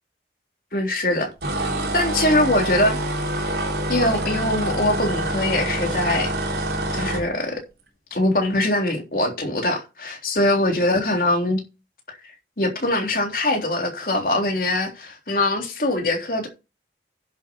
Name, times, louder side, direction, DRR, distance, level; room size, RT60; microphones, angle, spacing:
voice 1, 0.7-1.3 1.9-3.0 3.9-6.3 6.9-7.6 8.1-11.6 12.6-16.5, left 1 dB, 50° left, 3.5 m, -22 dB
sound 1, 1.4-7.3, right 1 dB, 70° right, 3.6 m, -26 dB
10.5 x 7.7 x 4.5 m
head